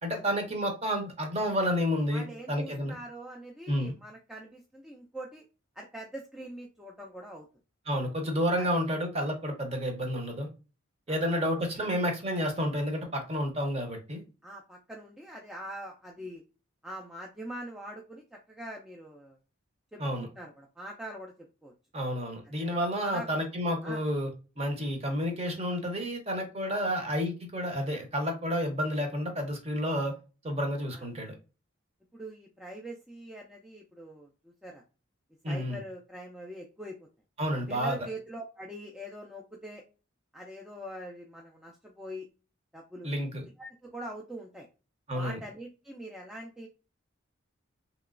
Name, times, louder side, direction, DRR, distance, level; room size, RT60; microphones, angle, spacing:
voice 1, 0.0-3.0 3.7-3.9 7.9-10.5 11.1-14.2 20.0-20.3 21.9-24.3 24.6-30.1 30.4-31.3 35.4-35.8 37.4-38.0 43.0-43.4 45.1-45.4, equal, 30° right, 3 dB, 0.7 m, -30 dB
voice 2, 2.1-5.4 5.8-7.5 8.6-8.7 11.1-11.2 11.8-11.9 14.4-16.4 16.8-19.4 19.9-21.3 21.6-21.7 23.0-23.5 23.8-24.0 26.7-26.9 30.9-31.0 32.1-34.8 35.5-37.0 37.7-39.8 40.3-42.2 42.7-43.1 43.6-44.7 45.1-46.7, right 1 dB, 5° right, -1 dB, 0.3 m, -43 dB
3.0 x 2.9 x 2.4 m, 0.33 s
head